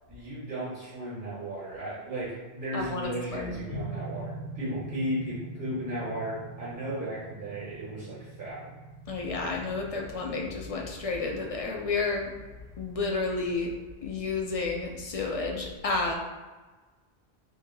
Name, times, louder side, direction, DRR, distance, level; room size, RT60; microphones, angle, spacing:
voice 1, 0.1-8.7, right 1 dB, 65° right, -9 dB, 1.5 m, -35 dB
voice 2, 2.7-3.8 9.1-12.3 12.8-13.7 14.0-16.1, left 3 dB, 55° left, 1 dB, 0.4 m, -31 dB
sound 1, 3.7-13.5, right 2 dB, 75° left, 1.0 m, -44 dB
3.0 x 2.7 x 3.8 m, 1.3 s
omnidirectional pair, 1.1 m